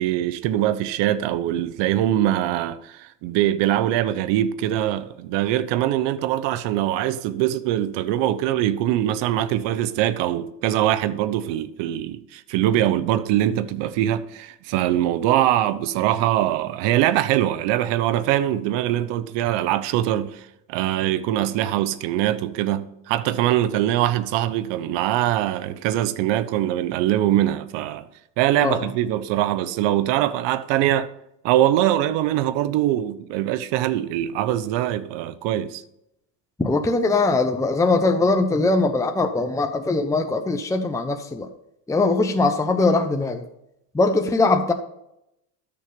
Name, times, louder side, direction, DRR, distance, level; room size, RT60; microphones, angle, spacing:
voice 1, 0.0-28.1 28.4-31.1 31.4-35.8, right 13 dB, 60° right, 1.0 m, -22 dB
voice 2, 36.6-41.5 41.9-43.5 43.9-44.7, left 3 dB, 5° left, 0.9 m, -21 dB
13.0 x 7.1 x 5.3 m
supercardioid pair, 105°, 49 cm